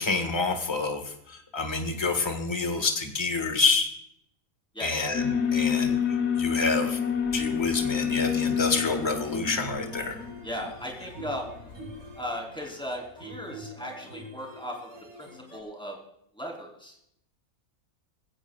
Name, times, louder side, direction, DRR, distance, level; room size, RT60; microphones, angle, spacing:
voice 1, 0.0-3.9 4.8-6.0 6.4-7.0 7.3-10.2, left 3 dB, 20° left, 5 dB, 1.5 m, -28 dB
voice 2, 4.7-5.1 10.4-11.5 12.2-14.9 15.2-16.0 16.3-17.0, equal, 5° left, -2 dB, 3.6 m, -37 dB
Alarm, 5.1-12.3, left 7 dB, 55° left, 1.2 m, -29 dB
sound 1, 8.2-15.6, equal, 85° right, 5.2 m, -45 dB
21.0 x 16.5 x 2.4 m, 0.74 s
omnidirectional pair, 1.5 m